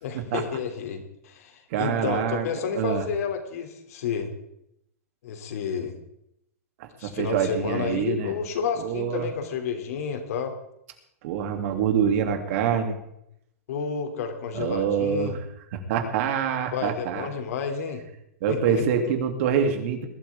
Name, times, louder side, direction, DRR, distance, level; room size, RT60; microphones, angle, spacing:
voice 1, 0.0-4.3 5.2-6.0 7.0-10.5 13.7-15.3 16.7-18.0 18.5-18.8, left 6 dB, 70° left, 6 dB, 2.8 m, -30 dB
voice 2, 1.7-2.5 2.7-3.1 6.8-8.3 8.8-9.3 11.2-13.0 14.5-15.4 15.7-17.3 18.4-20.1, right 7 dB, 60° right, 5 dB, 2.7 m, -25 dB
21.5 x 12.0 x 3.6 m, 0.77 s
hypercardioid pair, 130°, 8 cm